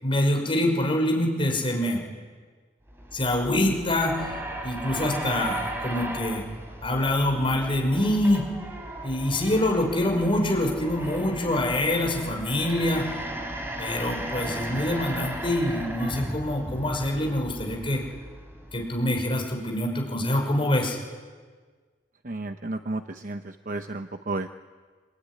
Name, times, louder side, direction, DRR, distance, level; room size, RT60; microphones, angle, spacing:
voice 1, 0.0-2.0 3.1-4.2 4.6-6.4 6.8-8.5 9.0-13.1 13.8-18.0 18.7-21.0, left 1 dB, 30° left, 1 dB, 5.8 m, -25 dB
sound 1, 2.9-19.2, right 1 dB, 15° right, 3.6 m, -36 dB
voice 2, 22.2-23.4 23.7-24.5, right 2 dB, 45° right, 7 dB, 0.9 m, -32 dB
26.5 x 21.5 x 10.0 m, 1.5 s
head